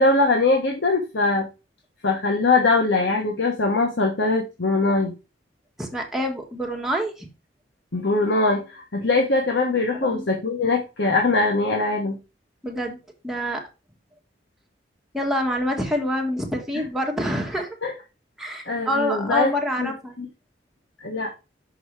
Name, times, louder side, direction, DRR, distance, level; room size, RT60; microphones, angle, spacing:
voice 1, 0.0-1.5 2.0-5.1 7.9-12.2 17.8-17.9 18.7-19.5 19.8-19.9 20.2-20.3 21.0-21.3, left 3 dB, 80° left, 1 dB, 1.2 m, -21 dB
voice 2, 5.8-7.3 9.9-10.3 12.6-13.0 13.2-13.6 15.1-17.7 18.4-20.2, equal, ahead, 0 dB, 1.5 m, -26 dB
6.3 x 4.6 x 4.7 m, 0.29 s
head